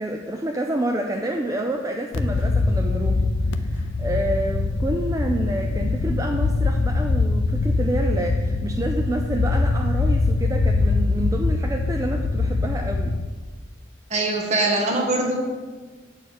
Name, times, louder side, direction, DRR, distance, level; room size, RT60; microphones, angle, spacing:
voice 1, 0.0-13.2, right 1 dB, 15° right, 2 dB, 0.4 m, -28 dB
sound 1, 2.1-13.3, left 3 dB, 85° left, 0.5 m, -23 dB
voice 2, 14.1-15.4, right 2 dB, 35° right, 0 dB, 1.1 m, -22 dB
8.1 x 4.4 x 6.3 m, 1.4 s
head